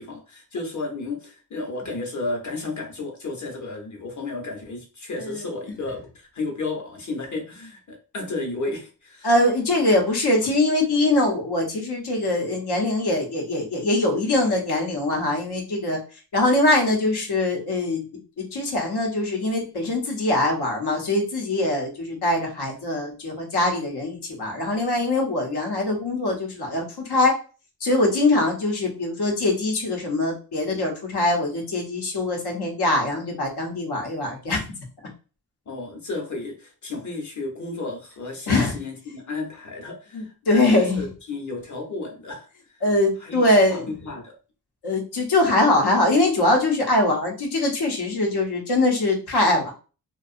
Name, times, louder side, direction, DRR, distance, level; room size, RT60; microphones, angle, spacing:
voice 1, 0.0-9.3 35.7-42.8 43.2-44.3, left 3 dB, 50° left, 0.8 m, -33 dB
voice 2, 9.2-16.0 16.3-18.0 18.4-27.3 27.8-34.6 38.5-38.7 40.1-41.0 42.8-44.0 44.8-49.7, left 2 dB, 90° left, 0.9 m, -22 dB
2.6 x 2.3 x 2.4 m
wide cardioid pair, 165°, 38 cm